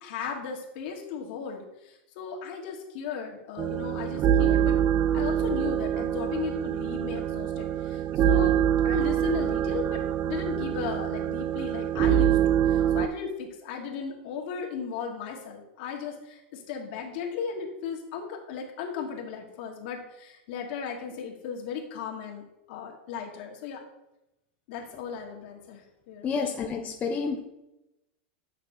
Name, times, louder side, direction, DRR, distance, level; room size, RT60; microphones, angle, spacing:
voice 1, 0.0-4.8 5.1-8.6 8.8-23.8 24.7-26.4, left 7 dB, 60° left, 1 dB, 1.5 m, -36 dB
sound 1, 3.6-13.1, right 10 dB, 30° right, 0.4 m, -25 dB
voice 2, 26.2-27.4, left 5 dB, 25° left, 0 dB, 0.7 m, -29 dB
8.7 x 5.8 x 2.7 m, 0.91 s
supercardioid pair, 130°, 6 cm